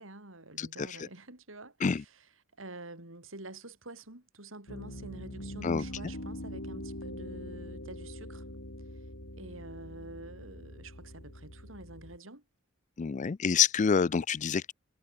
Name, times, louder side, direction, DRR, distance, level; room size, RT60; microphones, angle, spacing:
voice 1, 0.0-2.2 2.6-8.5 9.4-12.4, right 2 dB, 70° right, 4.8 m, -48 dB
Piano, 4.7-12.2, left 1 dB, 80° left, 6.4 m, -43 dB
voice 2, 13.0-14.7, left 6 dB, 40° left, 0.4 m, -27 dB
head